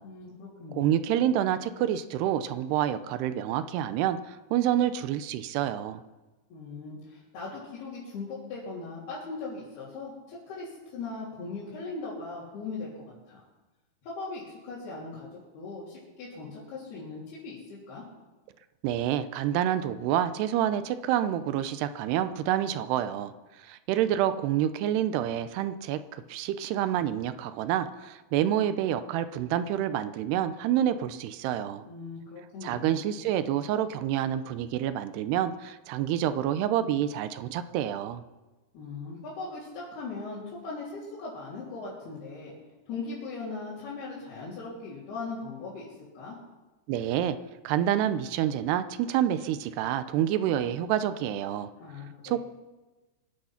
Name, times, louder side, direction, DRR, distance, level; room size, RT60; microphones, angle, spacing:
voice 1, 0.0-1.0 6.5-13.4 14.0-15.3 15.5-18.0 31.9-33.0 38.7-42.5 42.9-46.4 51.8-52.4, left 3 dB, 70° left, -8 dB, 5.3 m, -39 dB
voice 2, 0.7-6.0 18.8-23.3 23.6-31.8 32.6-38.2 46.9-47.4 47.6-51.7 52.2-52.4, right 11 dB, 85° right, 12 dB, 2.8 m, -28 dB
24.5 x 9.2 x 5.8 m, 1.2 s
omnidirectional pair, 4.7 m